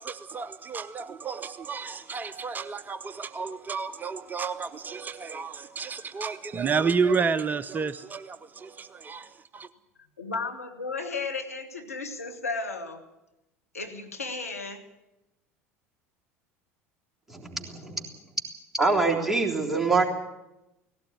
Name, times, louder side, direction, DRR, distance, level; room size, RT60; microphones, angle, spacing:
voice 1, 0.0-9.7, right 5 dB, 25° right, 13 dB, 0.6 m, -31 dB
voice 2, 10.2-13.1 13.7-14.9, left 4 dB, 80° left, 5 dB, 1.9 m, -34 dB
voice 3, 17.3-18.0 18.7-20.0, right 3 dB, 5° right, -1 dB, 3.5 m, -25 dB
18.0 x 17.0 x 9.6 m, 0.95 s
figure-of-eight pair, 70°, 8 cm